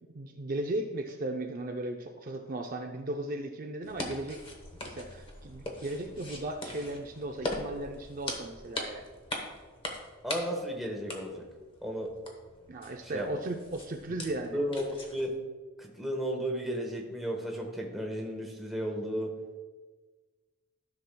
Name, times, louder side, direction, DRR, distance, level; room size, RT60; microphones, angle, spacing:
voice 1, 0.0-4.4 4.8-9.0 12.7-14.6, right 1 dB, 40° right, 3 dB, 0.5 m, -36 dB
sound 1, 3.8-15.4, left 1 dB, 25° left, 0.9 m, -41 dB
voice 2, 10.2-11.5 11.8-12.1 13.0-13.3 14.5-15.3 15.8-19.3, equal, ahead, -1 dB, 1.0 m, -34 dB
13.5 x 6.0 x 2.2 m, 1.4 s
head